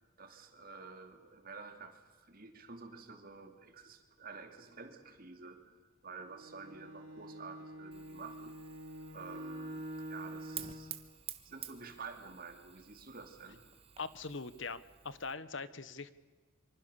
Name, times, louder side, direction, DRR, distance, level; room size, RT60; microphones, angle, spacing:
voice 1, 0.2-8.5 9.1-10.9 11.4-13.6, right 4 dB, 45° right, 6 dB, 2.7 m, -50 dB
Bowed string instrument, 6.2-11.0, right 1 dB, 70° right, 3.9 m, -46 dB
Fire, 7.9-15.3, right 10 dB, 30° right, 1.4 m, -51 dB
voice 2, 14.0-16.1, left 4 dB, 60° left, 16 dB, 1.1 m, -42 dB
26.5 x 24.5 x 7.0 m, 1.4 s
head